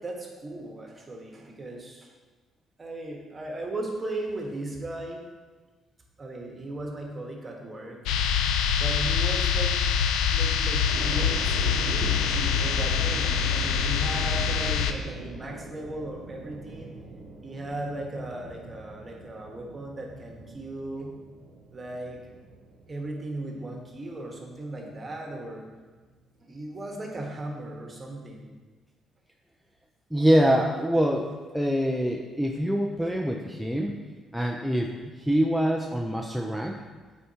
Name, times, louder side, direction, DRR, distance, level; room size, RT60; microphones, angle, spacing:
voice 1, 0.0-2.1 2.8-5.2 6.2-8.0 8.8-9.8 10.3-17.0 17.4-21.1 21.7-22.2 22.9-25.6 26.4-28.5 34.9-35.0, right 1 dB, 30° right, 0 dB, 1.4 m, -37 dB
sound 1, 8.1-14.9, left 7 dB, 85° left, 0.4 m, -25 dB
sound 2, 10.9-24.9 25.4-26.1, right 3 dB, 85° right, 0.8 m, -43 dB
voice 2, 30.1-33.9 34.3-36.8, equal, ahead, 0 dB, 0.5 m, -25 dB
8.1 x 4.5 x 2.9 m, 1.3 s
supercardioid pair, 70°, 0 cm